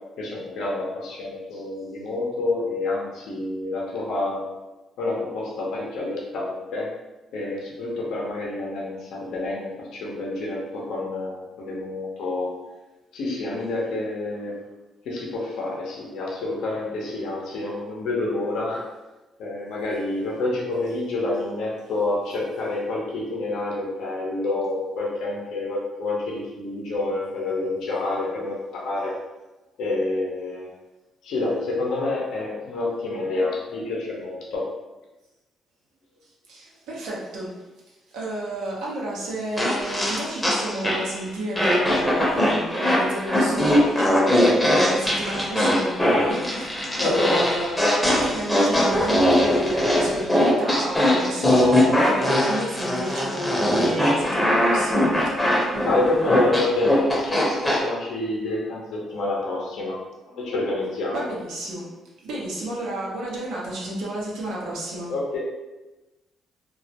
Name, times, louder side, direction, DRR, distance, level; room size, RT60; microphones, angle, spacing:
voice 1, 0.2-4.5 5.0-6.9 7.3-12.6 13.1-14.6 15.0-18.8 19.4-29.2 29.8-30.7 31.2-34.7 47.0-47.4 53.8-54.0 55.3-60.0 60.2-61.3 65.1-65.4, left 2 dB, 80° left, -3 dB, 0.5 m, -28 dB
voice 2, 36.2-47.8 48.1-55.9 61.1-61.9 62.2-65.1, right 1 dB, 85° right, -4 dB, 0.7 m, -31 dB
sound 1, 39.6-41.2 41.6-57.8, left 1 dB, 10° left, 0.6 m, -21 dB
2.3 x 2.1 x 2.7 m, 1.1 s
cardioid pair, 90°, 0 cm